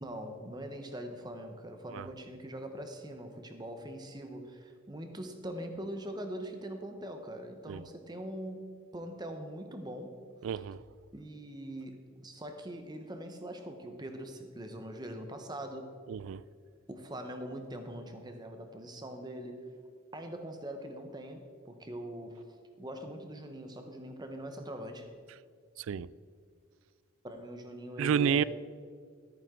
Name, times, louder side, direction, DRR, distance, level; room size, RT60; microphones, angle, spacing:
voice 1, 0.0-10.1 11.1-15.9 16.9-19.6 20.1-25.1 27.2-28.4, right 1 dB, 20° right, 6 dB, 1.0 m, -42 dB
voice 2, 10.4-10.8 16.1-16.4 25.8-26.1 28.0-28.4, right 7 dB, 80° right, 19 dB, 0.3 m, -30 dB
13.5 x 9.0 x 3.8 m, 2.1 s
head